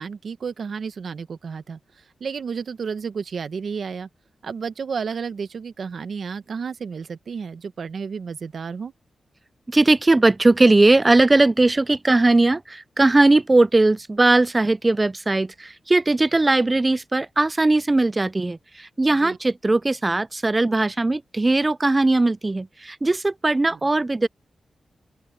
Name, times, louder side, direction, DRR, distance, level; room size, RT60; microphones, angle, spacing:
voice 1, 0.0-1.8 2.2-4.1 4.4-8.9 19.2-19.4 23.7-23.8, right 6 dB, 65° right, 1.1 m, -31 dB
voice 2, 9.7-24.3, right 2 dB, 25° right, 0.4 m, -19 dB
open air
cardioid pair, 90°, 0 cm